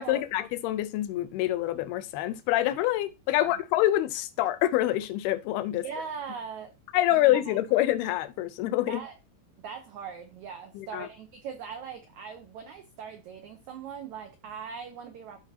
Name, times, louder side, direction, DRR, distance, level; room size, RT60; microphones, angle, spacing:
voice 1, 0.0-5.8 6.9-9.0 10.7-11.1, left 14 dB, 80° left, 2.5 m, -26 dB
voice 2, 5.7-6.7 7.1-7.6 8.9-9.1 9.6-15.4, right 6 dB, 90° right, 1.6 m, -40 dB
13.5 x 4.7 x 2.8 m
omnidirectional pair, 4.6 m